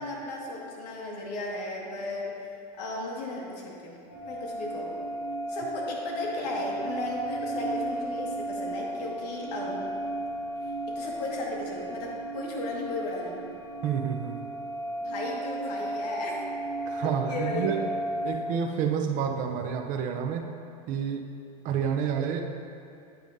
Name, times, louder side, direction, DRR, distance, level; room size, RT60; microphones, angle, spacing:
voice 1, 0.0-2.5 2.8-4.0 4.3-5.0 5.5-9.9 10.6-13.4 15.0-16.4 17.0-17.8, left 2 dB, 75° left, -2 dB, 1.9 m, -35 dB
sound 1, 4.1-18.3, right 1 dB, 40° left, 1.3 m, -34 dB
voice 2, 13.8-14.4 16.9-17.9 18.2-20.5 20.9-21.2 21.6-22.5, right 7 dB, 40° right, 4 dB, 0.6 m, -29 dB
9.1 x 8.8 x 2.7 m, 2.5 s
supercardioid pair, 135°, 20 cm